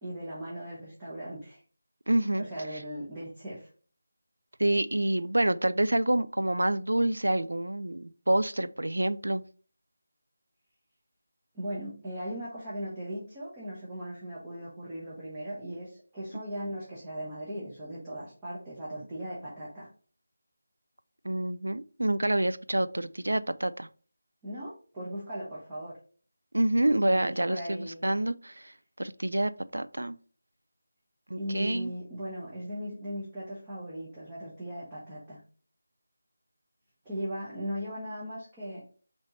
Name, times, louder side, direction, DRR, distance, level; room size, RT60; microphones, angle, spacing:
voice 1, 0.0-1.6 2.4-3.7 11.5-19.9 24.4-26.0 27.0-28.0 31.4-35.4 37.0-38.8, equal, 15° right, 1.2 m, -38 dB
voice 2, 2.1-2.4 4.6-9.4 21.2-23.9 26.5-28.7 29.0-30.2 31.3-31.9, right 1 dB, 90° right, 0.4 m, -27 dB
4.2 x 3.1 x 3.9 m
figure-of-eight pair, 165°, 0 cm